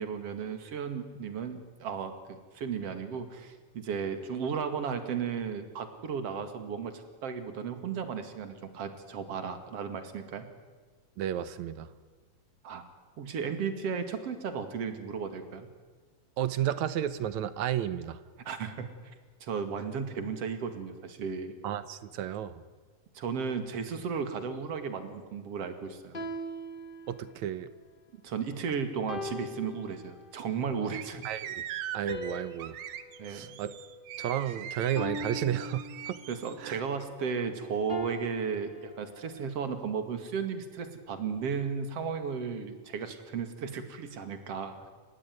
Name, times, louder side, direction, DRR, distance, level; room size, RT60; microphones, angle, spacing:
voice 1, 0.0-10.5 12.6-12.8 13.2-15.7 18.5-18.9 19.4-21.5 23.1-26.2 28.2-31.3 33.2-33.5 36.3-44.9, right 6 dB, 55° right, 9 dB, 3.1 m, -35 dB
voice 2, 11.2-11.9 16.4-18.2 21.6-22.6 27.1-27.7 31.2-31.6 31.9-32.8 33.3-33.8 34.2-36.2 36.6-36.8, right 10 dB, 70° right, 15 dB, 2.3 m, -32 dB
sound 1, 26.1-27.5 29.1-30.5 32.1-34.4 35.0-36.5 37.9-39.5, left 1 dB, 30° left, 0.9 m, -41 dB
sound 2, 30.9-36.5, right 11 dB, 85° right, 2.6 m, -41 dB
29.5 x 15.5 x 9.4 m, 1.5 s
omnidirectional pair, 3.5 m